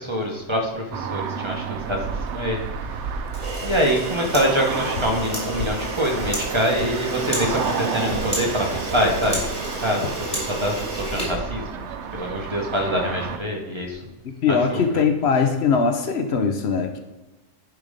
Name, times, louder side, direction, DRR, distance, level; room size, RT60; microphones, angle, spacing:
voice 1, 0.0-3.0 3.6-9.5 9.7-11.9 12.1-14.0 14.5-14.8, equal, 25° right, 0 dB, 1.3 m, -25 dB
sound 1, 0.9-13.4, right 7 dB, 65° right, 0.9 m, -31 dB
Camera, 3.3-12.0, right 1 dB, 5° left, 3.0 m, -31 dB
sound 2, 4.9-5.2 5.6-5.9 6.2-7.0 7.4-7.6 8.1-8.3 8.7-8.9 9.3-9.5 10.0-10.2 10.8-11.1, left 5 dB, 85° left, 1.1 m, -33 dB
voice 2, 14.2-17.0, left 5 dB, 60° left, 6 dB, 1.0 m, -21 dB
11.0 x 3.6 x 5.0 m, 1.1 s
omnidirectional pair, 1.3 m